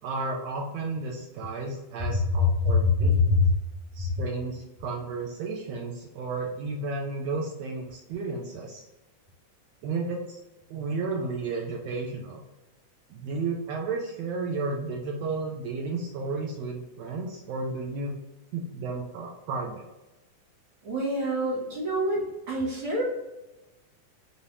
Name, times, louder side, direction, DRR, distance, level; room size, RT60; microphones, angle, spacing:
voice 1, 0.0-3.2 3.9-8.8 9.8-10.4 10.7-12.4 13.1-18.1 18.5-19.9, right 3 dB, 80° right, -1 dB, 1.5 m, -33 dB
voice 2, 2.1-3.5 20.8-23.0, left 3 dB, 55° right, -9 dB, 1.9 m, -24 dB
5.3 x 2.8 x 3.1 m, 0.99 s
omnidirectional pair, 3.6 m